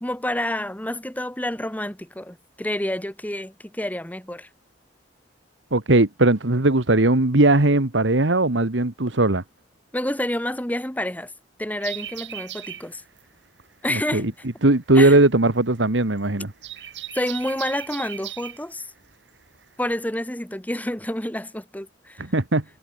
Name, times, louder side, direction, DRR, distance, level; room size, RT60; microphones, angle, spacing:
voice 1, 0.0-4.5 9.9-11.3 11.6-13.0 13.8-14.3 15.0-15.2 16.8-16.9 17.1-18.9 19.8-22.2, left 1 dB, 10° left, 2.0 m, -28 dB
voice 2, 5.7-9.4 13.9-14.3 14.6-16.5 22.2-22.6, right 2 dB, 90° right, 1.8 m, -19 dB
sound 1, 11.8-20.0, right 12 dB, 70° right, 3.2 m, -38 dB
head